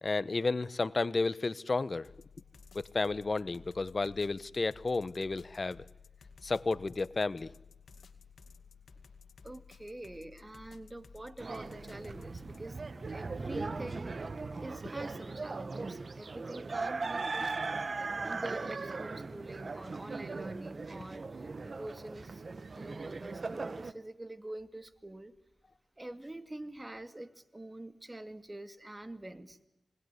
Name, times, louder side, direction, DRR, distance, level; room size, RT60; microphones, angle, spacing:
voice 1, 0.0-2.1 2.7-5.8 6.4-7.5, left 3 dB, 45° left, 1.1 m, -32 dB
sound 1, 2.0-12.7, left 5 dB, 70° left, 2.3 m, -56 dB
voice 2, 9.4-12.8 13.1-22.4 22.8-25.3 26.0-29.6, right 1 dB, 20° right, 2.4 m, -46 dB
sound 2, 11.4-23.9, right 3 dB, 55° right, 1.5 m, -39 dB
27.5 x 21.0 x 9.7 m
cardioid pair, 45°, 0 cm